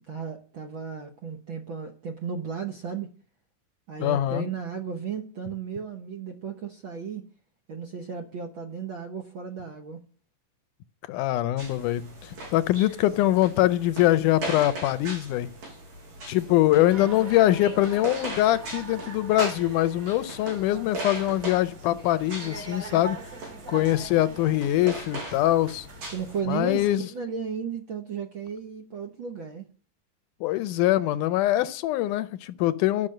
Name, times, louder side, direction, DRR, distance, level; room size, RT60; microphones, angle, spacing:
voice 1, 0.1-3.1 3.9-7.3 7.7-10.0 16.3-16.6 26.1-29.7, right 6 dB, 60° right, 1.3 m, -34 dB
voice 2, 4.0-4.4 11.1-15.5 16.3-23.2 23.7-25.9 26.5-27.1 30.4-33.1, left 14 dB, 80° left, 2.1 m, -23 dB
sound 1, 11.6-26.4, right 2 dB, 90° right, 6.3 m, -39 dB
sound 2, 16.9-26.9, right 3 dB, 30° right, 2.0 m, -43 dB
12.0 x 6.0 x 7.6 m
omnidirectional pair, 3.7 m